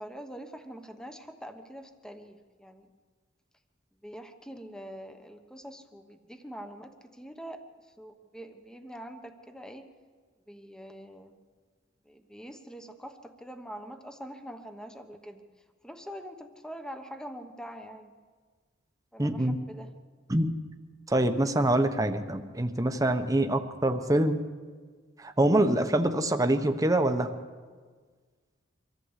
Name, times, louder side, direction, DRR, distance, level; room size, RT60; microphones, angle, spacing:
voice 1, 0.0-2.9 4.0-7.7 8.0-9.9 10.5-11.4 12.1-15.4 15.8-18.1 19.1-19.9, equal, 5° left, 7 dB, 1.2 m, -44 dB
voice 2, 19.2-19.6 20.3-20.5 21.1-24.4 25.2-27.3, right 1 dB, 20° right, 6 dB, 1.1 m, -25 dB
24.0 x 14.5 x 8.2 m, 1.5 s
head